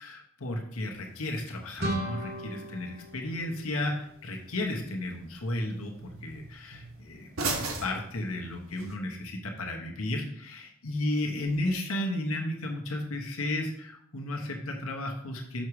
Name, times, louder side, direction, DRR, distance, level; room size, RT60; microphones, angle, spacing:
voice 1, 0.0-15.7, left 1 dB, 75° left, 1 dB, 1.1 m, -33 dB
sound 1, 0.9-8.9, right 3 dB, 70° right, 1.3 m, -41 dB
sound 2, 1.8-4.5, right 1 dB, 45° right, 1.3 m, -36 dB
6.4 x 6.0 x 4.8 m, 0.71 s
head